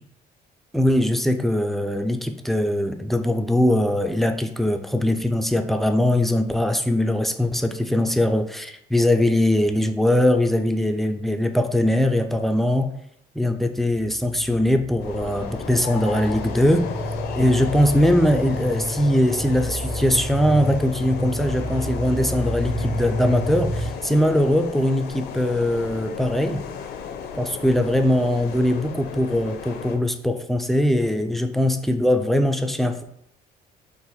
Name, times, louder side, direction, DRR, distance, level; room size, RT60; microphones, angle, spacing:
voice 1, 0.7-12.9 13.4-16.9 17.4-26.6 27.3-33.0, left 1 dB, ahead, 7 dB, 0.3 m, -21 dB
sound 1, 13.9-23.9, right 1 dB, 25° right, 0.8 m, -31 dB
sound 2, 15.0-30.0, left 6 dB, 75° left, 0.6 m, -34 dB
4.0 x 2.5 x 4.2 m, 0.75 s
cardioid pair, 110°, 17 cm